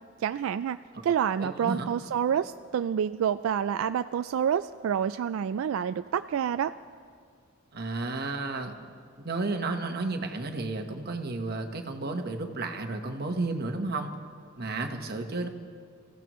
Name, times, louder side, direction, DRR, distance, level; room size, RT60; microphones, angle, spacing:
voice 1, 0.2-0.8 1.0-6.7, right 8 dB, 85° right, 12 dB, 0.3 m, -28 dB
voice 2, 1.4-1.9 7.7-8.9 9.2-14.1 14.6-15.5, right 3 dB, 50° right, 5 dB, 1.2 m, -32 dB
27.5 x 15.0 x 3.1 m, 2.2 s
head